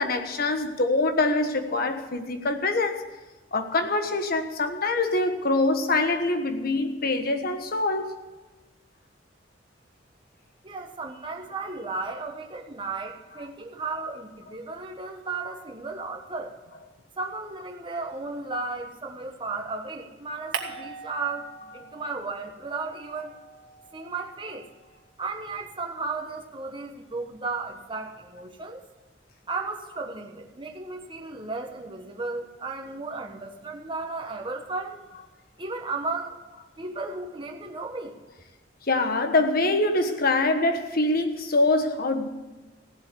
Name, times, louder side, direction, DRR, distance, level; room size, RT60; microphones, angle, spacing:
voice 1, 0.0-3.1 3.5-8.2 38.9-42.3, left 2 dB, 55° left, 6 dB, 1.3 m, -24 dB
voice 2, 10.6-16.5 17.2-23.4 23.9-24.7 25.2-28.8 29.5-35.0 35.6-36.4 36.8-38.2, right 3 dB, 25° right, 2 dB, 1.3 m, -34 dB
sound 1, 20.5-22.2 22.5-25.0, right 6 dB, 90° right, 1.5 m, -40 dB
16.0 x 7.8 x 8.3 m, 1.1 s
head